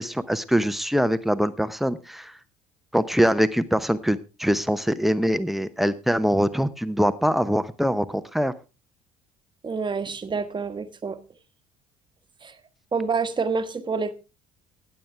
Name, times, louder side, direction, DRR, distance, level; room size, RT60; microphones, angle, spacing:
voice 1, 0.0-2.3 2.9-8.5, equal, ahead, 0.9 m, -23 dB
voice 2, 9.6-11.2 12.4-12.5 12.9-14.1, right 5 dB, 25° right, 1.3 m, -27 dB
19.0 x 8.0 x 3.4 m
figure-of-eight pair, 55°, 18 cm